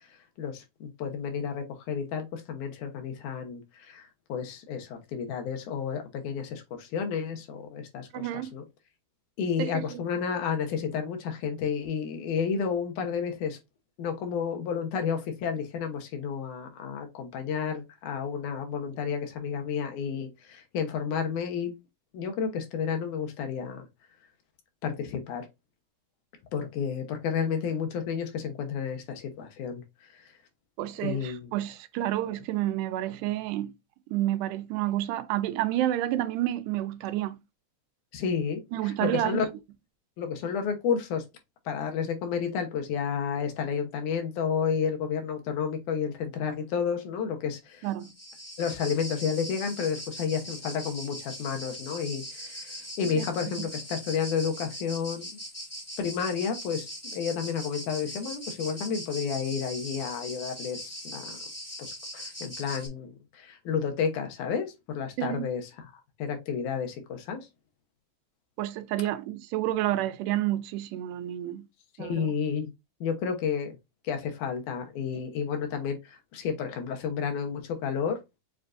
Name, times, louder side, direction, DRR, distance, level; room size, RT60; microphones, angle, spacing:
voice 1, 0.4-8.6 9.4-13.6 14.0-21.7 22.1-23.8 24.8-25.5 26.5-29.8 31.0-31.5 38.1-39.5 40.2-41.2 41.7-47.9 48.6-55.3 56.0-61.4 61.8-65.7 66.2-67.5 72.0-72.7 73.0-73.7 74.0-78.2, left 6 dB, 80° left, 2.4 m, -31 dB
voice 2, 8.1-8.5 9.6-10.0 30.8-33.7 34.1-37.4 38.7-39.5 47.8-48.1 53.2-53.3 53.6-53.7 65.2-65.5 68.6-71.6 72.0-72.3, right 14 dB, 90° right, 2.1 m, -29 dB
sound 1, 47.8-62.9, equal, 15° left, 0.4 m, -41 dB
7.0 x 2.5 x 2.4 m
omnidirectional pair, 3.6 m